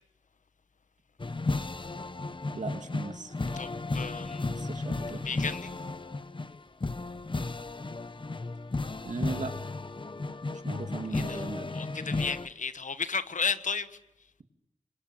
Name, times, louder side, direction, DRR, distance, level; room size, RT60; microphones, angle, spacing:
sound 1, 1.2-12.5, left 3 dB, 40° left, 1.1 m, -34 dB
voice 1, 2.5-3.3 4.5-5.3 9.0-9.5 10.6-11.7, right 4 dB, 75° right, 2.7 m, -38 dB
voice 2, 3.5-4.5 5.2-5.7 11.1-11.4 11.7-13.9, left 5 dB, 85° left, 1.2 m, -33 dB
26.5 x 23.5 x 9.5 m
wide cardioid pair, 55°, 13 cm